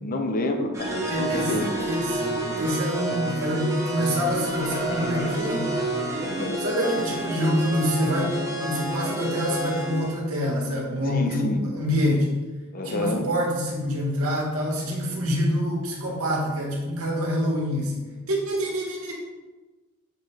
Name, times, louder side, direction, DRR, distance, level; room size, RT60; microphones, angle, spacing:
voice 1, 0.0-1.7 6.2-6.6 11.1-11.7 12.7-13.3, left 1 dB, 40° left, 5 dB, 0.6 m, -28 dB
sound 1, 0.7-10.2, right 1 dB, 15° right, 0.9 m, -29 dB
voice 2, 1.1-1.5 1.8-2.3 2.6-5.7 6.6-12.3 12.8-19.1, equal, 75° right, -2 dB, 1.6 m, -26 dB
6.8 x 3.2 x 4.7 m, 1.2 s
head